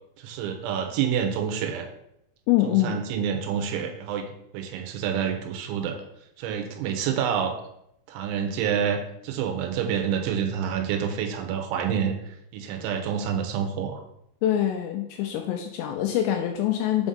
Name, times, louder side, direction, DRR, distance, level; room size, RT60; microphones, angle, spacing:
voice 1, 0.2-1.9 2.6-4.3 4.5-6.0 6.4-7.5 8.1-14.0, right 8 dB, 85° right, 3 dB, 3.1 m, -28 dB
voice 2, 2.5-3.0 14.4-17.1, left 12 dB, 85° left, 4 dB, 2.5 m, -24 dB
7.0 x 2.7 x 5.1 m, 0.78 s
omnidirectional pair, 5.3 m